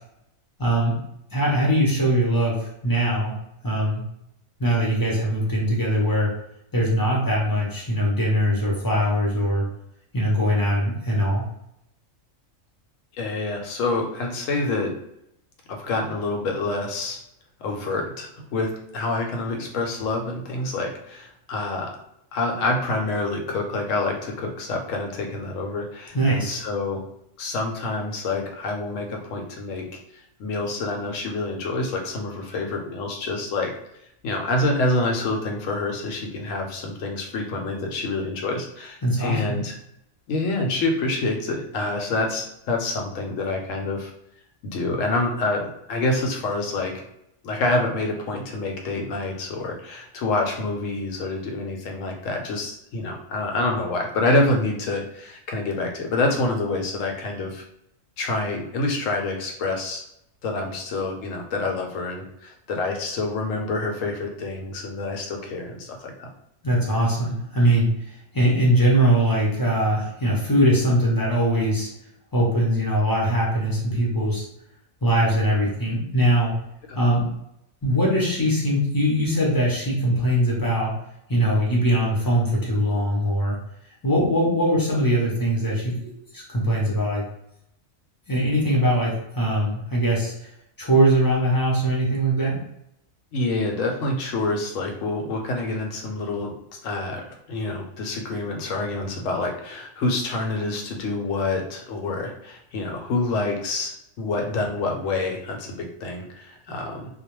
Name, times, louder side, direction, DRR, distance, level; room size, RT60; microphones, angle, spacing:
voice 1, 0.6-1.0 1.3-3.3 3.6-4.0 4.6-6.3 6.7-9.7 10.1-11.4 26.1-26.6 39.0-39.6 66.6-71.9 72.3-74.4 75.0-76.5 76.9-77.3 77.8-80.9 81.3-83.6 84.0-87.2 88.3-90.3 90.8-92.6, equal, 25° left, -4 dB, 0.5 m, -21 dB
voice 2, 13.1-14.9 15.7-17.2 17.6-21.9 22.3-27.0 27.4-29.9 30.1-33.7 34.2-39.7 40.3-44.1 44.6-47.0 47.4-57.6 58.2-60.0 60.4-66.3 76.9-77.0 93.3-96.5 96.8-107.1, left 2 dB, 75° left, 2 dB, 0.9 m, -27 dB
2.3 x 2.1 x 3.0 m, 0.78 s
omnidirectional pair, 1.4 m